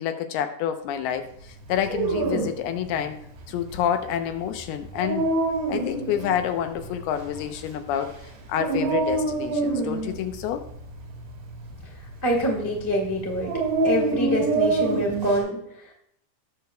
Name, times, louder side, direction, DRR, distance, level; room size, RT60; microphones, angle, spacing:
voice 1, 0.0-3.2 3.5-5.3 5.7-8.1 8.5-10.7, left 9 dB, 85° left, 7 dB, 2.7 m, -28 dB
Dog, 1.7-15.4, right 3 dB, 85° right, 3.8 m, -27 dB
voice 2, 11.8-13.5 13.8-15.9, equal, 10° left, -2 dB, 1.2 m, -26 dB
17.0 x 6.7 x 2.2 m, 0.73 s
omnidirectional pair, 4.5 m